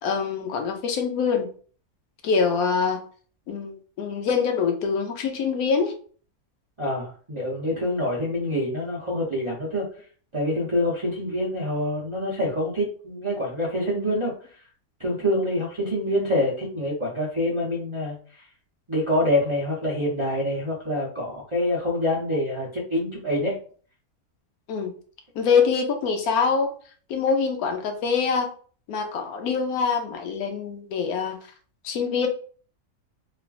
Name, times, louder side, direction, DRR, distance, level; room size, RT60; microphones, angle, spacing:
voice 1, 0.0-1.5 2.2-3.0 3.5-5.9 24.7-24.9 25.4-26.7 27.1-28.5 28.9-31.4 31.8-32.3, left 5 dB, 85° left, 4 dB, 1.1 m, -24 dB
voice 2, 6.8-9.9 10.3-14.3 15.0-18.5 18.9-23.6, left 1 dB, 40° right, -7 dB, 0.4 m, -26 dB
3.0 x 2.4 x 2.3 m, 0.43 s
omnidirectional pair, 1.5 m